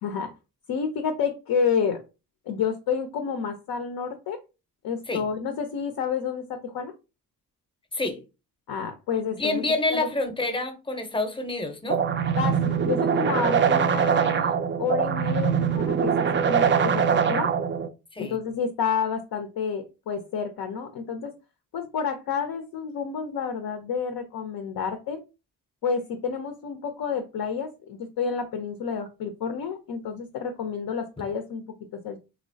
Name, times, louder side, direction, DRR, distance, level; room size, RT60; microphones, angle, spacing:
voice 1, 0.0-0.3 0.7-2.0 2.5-4.4 4.8-6.9 8.7-9.6 9.9-10.1 12.4-16.1 16.5-17.5 18.2-21.3 21.7-25.2 25.8-31.6 31.9-32.2, left 6 dB, 55° left, 0.6 m, -29 dB
voice 2, 9.4-12.0 18.1-18.4, left 2 dB, 10° left, 0.7 m, -28 dB
sound 1, 11.9-17.9, right 7 dB, 30° right, 0.4 m, -23 dB
2.9 x 2.0 x 2.6 m
supercardioid pair, 50°, 43 cm